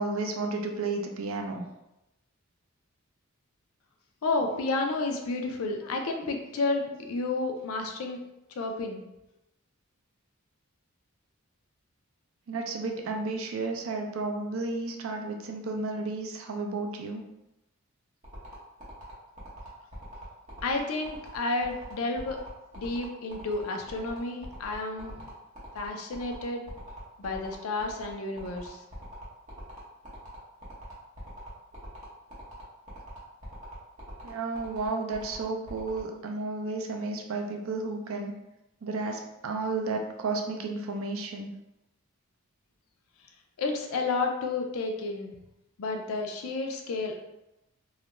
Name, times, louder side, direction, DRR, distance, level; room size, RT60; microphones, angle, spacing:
voice 1, 0.0-1.7 12.5-17.2 34.2-38.3 38.8-41.5, right 3 dB, 65° right, 3 dB, 0.4 m, -32 dB
voice 2, 4.2-8.2 8.6-9.1 20.6-22.4 22.8-25.3 25.7-26.6 27.2-28.8 43.6-45.4 45.8-47.2, left 3 dB, 75° left, 3 dB, 0.4 m, -31 dB
sound 1, 18.2-36.0, equal, 35° right, 0.8 m, -45 dB
2.3 x 2.1 x 2.9 m, 0.91 s
head